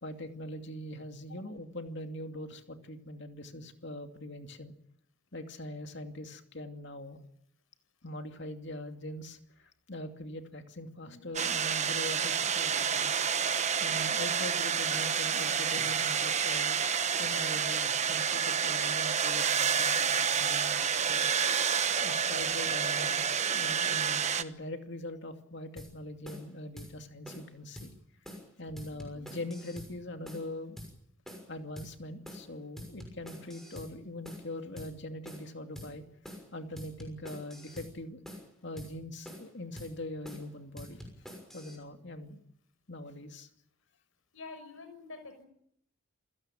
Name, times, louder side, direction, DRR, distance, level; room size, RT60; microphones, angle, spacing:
voice 1, 0.0-4.7 5.3-7.2 8.0-13.3 13.8-16.8 17.2-21.3 22.0-27.9 28.6-30.8 31.5-36.1 36.5-38.2 38.6-41.1 41.5-42.4 42.9-43.5, left 1 dB, 55° left, 6 dB, 2.6 m, -42 dB
sound 1, 11.3-24.4, right 7 dB, 35° right, 1.1 m, -29 dB
sound 2, 25.8-25.9 26.3-26.5 26.8-26.9 27.3-27.5 27.8-27.9 28.3-28.5 28.8-29.9 30.3-30.5 30.8-30.9 31.3-31.5 31.8-31.9 32.3-32.5 32.8-33.9 34.3-34.5 34.8-34.9 35.3-35.5 35.8-35.9 36.3-36.5 36.8-37.9 38.3-38.5 38.8-38.9 39.3-39.5 39.8-39.9 40.3-40.5 40.8-41.8, equal, ahead, 6.1 m, -46 dB
voice 2, 44.3-45.4, left 3 dB, 80° left, 7 dB, 6.2 m, -46 dB
28.0 x 16.5 x 9.0 m, 0.70 s
head